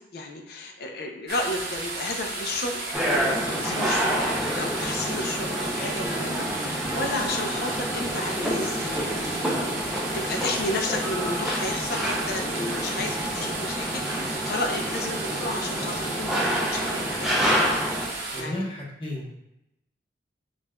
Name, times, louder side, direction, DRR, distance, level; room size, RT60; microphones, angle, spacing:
voice 1, 0.0-9.4 9.8-17.4 18.4-18.6, left 2 dB, 55° left, 2 dB, 0.5 m, -33 dB
sound 1, 1.3-18.4, right 2 dB, 55° right, 0.7 m, -34 dB
sound 2, 2.9-18.1, equal, 5° right, 0.5 m, -28 dB
voice 2, 18.3-19.4, left 1 dB, 30° left, -4 dB, 0.9 m, -33 dB
5.2 x 2.5 x 2.2 m, 0.86 s
head